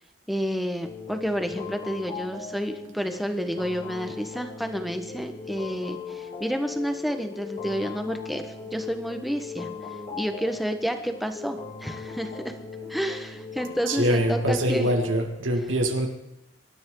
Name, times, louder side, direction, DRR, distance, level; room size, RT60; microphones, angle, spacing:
voice 1, 0.3-9.7 10.2-12.5 12.9-14.9, equal, ahead, 1.3 m, -30 dB
sound 1, 0.8-15.3, left 5 dB, 35° left, 2.6 m, -39 dB
voice 2, 13.9-16.1, right 1 dB, 80° right, 2.1 m, -24 dB
25.5 x 13.0 x 3.9 m
head